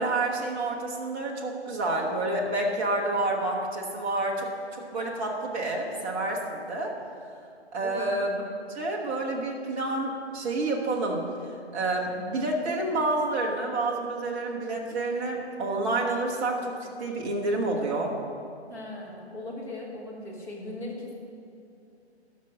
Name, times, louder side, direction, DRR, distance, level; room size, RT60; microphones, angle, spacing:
voice 1, 0.0-6.9 7.7-8.4 8.7-11.2 11.7-18.2, right 2 dB, 10° right, -1 dB, 0.8 m, -29 dB
voice 2, 7.8-8.2 18.7-21.1, left 2 dB, 10° left, -5 dB, 1.2 m, -38 dB
13.0 x 5.9 x 7.4 m, 2.5 s
figure-of-eight pair, 145°, 34 cm